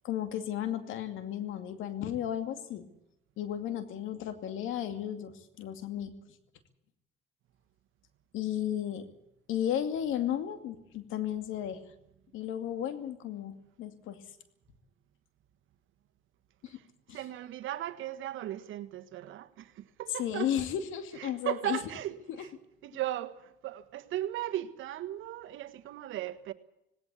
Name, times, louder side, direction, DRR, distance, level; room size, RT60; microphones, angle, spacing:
voice 1, 0.0-2.9 3.4-6.1 8.3-9.1 9.5-11.8 12.3-14.2 16.6-16.8 17.1-17.2 20.2-21.8 22.3-22.4, left 10 dB, 90° left, 2.5 m, -34 dB
voice 2, 17.1-20.5 21.2-22.5 22.8-26.5, right 13 dB, 85° right, 1.5 m, -37 dB
18.5 x 18.0 x 8.4 m
cardioid pair, 90°, 20 cm